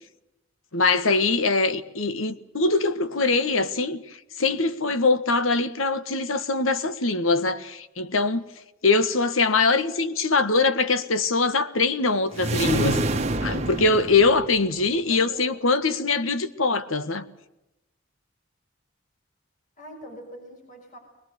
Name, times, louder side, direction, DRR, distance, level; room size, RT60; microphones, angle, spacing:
voice 1, 0.7-8.4 8.8-13.0 13.4-17.2, left 3 dB, 90° left, 1.6 m, -23 dB
sound 1, 12.3-14.9, right 2 dB, 35° right, 1.7 m, -27 dB
voice 2, 14.9-15.6 19.8-21.0, right 1 dB, 40° left, 5.9 m, -43 dB
22.0 x 21.5 x 8.3 m
head